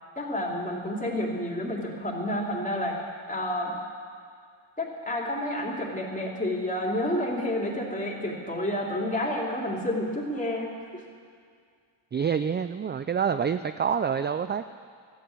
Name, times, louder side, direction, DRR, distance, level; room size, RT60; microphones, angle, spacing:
voice 1, 0.2-3.0 3.3-3.7 4.8-11.0, left 1 dB, 15° left, -2 dB, 3.1 m, -30 dB
voice 2, 12.1-14.7, right 7 dB, 25° right, 11 dB, 0.3 m, -27 dB
13.5 x 8.9 x 8.8 m, 2.1 s
cardioid pair, 75°, 49 cm